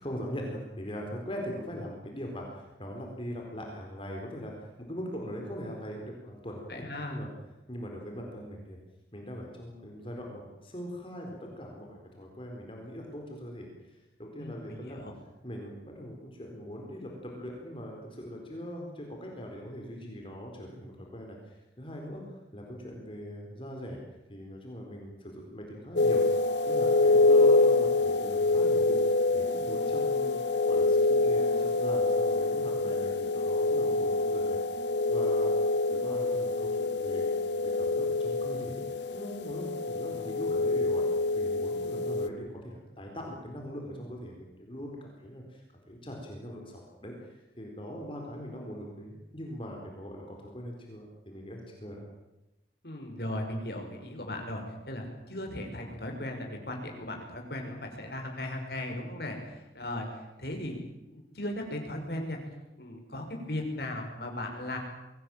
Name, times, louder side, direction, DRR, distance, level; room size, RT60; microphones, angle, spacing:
voice 1, 0.0-7.3 7.7-8.8 9.1-15.0 15.4-22.2 22.5-24.0 24.3-26.2 26.6-35.5 35.9-37.3 37.6-52.1, equal, 30° left, 0 dB, 4.3 m, -41 dB
voice 2, 6.7-7.2 14.4-15.1 52.8-60.1 60.4-60.8 61.1-62.4 62.8-64.8, left 1 dB, 60° left, 2 dB, 5.8 m, -37 dB
sound 1, 26.0-42.3, left 3 dB, 85° left, 1.4 m, -26 dB
23.5 x 18.0 x 9.1 m, 0.96 s
head